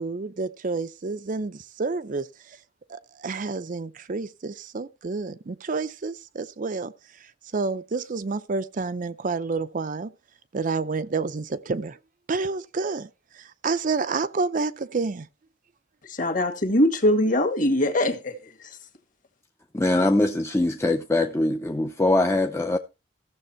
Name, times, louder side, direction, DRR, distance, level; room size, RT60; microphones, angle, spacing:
voice 1, 0.0-2.6 2.9-10.1 10.5-12.0 12.3-15.3, right 4 dB, 45° right, 0.5 m, -29 dB
voice 2, 16.1-18.3, left 1 dB, 45° left, 1.9 m, -22 dB
voice 3, 19.7-22.8, left 2 dB, 15° left, 0.5 m, -22 dB
14.5 x 7.0 x 4.3 m
head